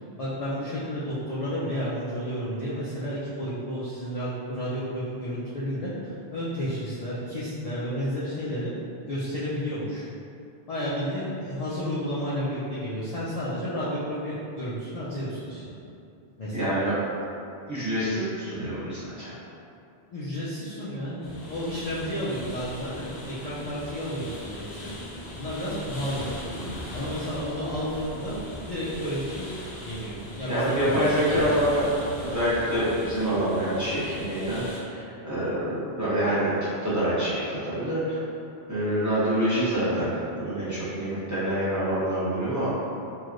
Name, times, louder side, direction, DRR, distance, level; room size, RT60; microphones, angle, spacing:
voice 1, 0.2-8.7 9.1-10.1 10.7-15.7 16.4-16.6 20.1-24.9 25.3-26.3 26.9-28.4 28.7-31.6, equal, 50° left, -10 dB, 0.5 m, -32 dB
voice 2, 16.5-16.9 17.7-19.3 26.5-26.7 30.5-31.9 32.2-34.6 34.9-38.2 38.7-42.7, right 1 dB, 20° right, -12 dB, 0.8 m, -26 dB
sound 1, 21.2-34.8, left 1 dB, 85° left, 0.9 m, -40 dB
3.1 x 2.7 x 2.5 m, 2.6 s
omnidirectional pair, 1.0 m